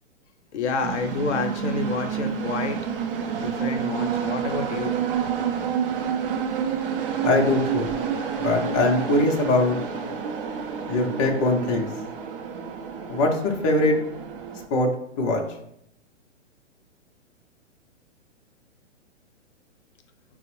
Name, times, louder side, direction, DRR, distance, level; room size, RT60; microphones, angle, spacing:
voice 1, 0.5-2.8 3.4-5.0, left 4 dB, 70° left, 6 dB, 0.6 m, -29 dB
sound 1, 0.8-14.7, right 7 dB, 50° right, 0.5 m, -29 dB
voice 2, 7.2-7.9 8.4-9.8 10.9-11.9 13.1-13.9 14.7-14.9 15.2-15.4, left 2 dB, 30° left, 1 dB, 0.4 m, -22 dB
5.0 x 2.0 x 2.9 m, 0.75 s
figure-of-eight pair, 120°, 37 cm